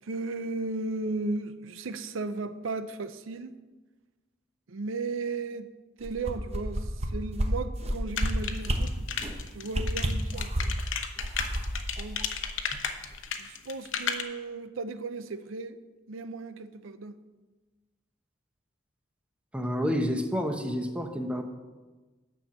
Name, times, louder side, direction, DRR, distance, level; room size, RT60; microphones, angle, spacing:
voice 1, 0.0-3.6 4.7-5.7 6.0-9.1 9.5-10.8 12.0-12.2 13.4-15.8 16.1-17.2, right 3 dB, 90° right, 0.6 m, -35 dB
sound 1, 6.0-7.1 7.4-7.5 7.8-8.3 8.6-8.8 9.2-9.4 9.7-10.8 11.2-12.8 13.1-13.2, right 1 dB, 30° right, 1.0 m, -30 dB
sound 2, 8.2-14.2, left 7 dB, 80° left, 0.9 m, -33 dB
voice 2, 19.5-21.4, equal, 5° right, 0.7 m, -29 dB
9.9 x 6.3 x 7.4 m
head